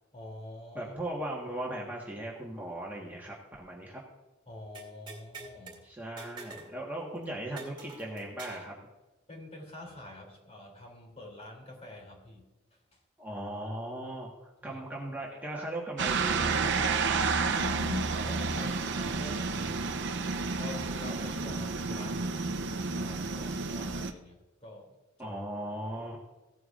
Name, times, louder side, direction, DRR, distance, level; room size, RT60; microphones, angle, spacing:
voice 1, 0.1-0.9 4.5-5.9 9.3-12.4 12.9-13.0 14.6-14.8 17.6-20.1 20.6-25.3, left 2 dB, 30° left, 0 dB, 3.1 m, -45 dB
voice 2, 0.7-4.0 5.8-8.7 13.2-16.7 25.2-26.2, right 1 dB, 10° right, -3 dB, 1.5 m, -38 dB
sound 1, 4.7-5.8 6.2-6.7 7.0-7.1 7.6-8.7, right 3 dB, 25° right, 2.7 m, -46 dB
sound 2, 16.0-24.1, right 4 dB, 60° right, 0.7 m, -30 dB
16.5 x 9.1 x 2.5 m, 1.1 s
head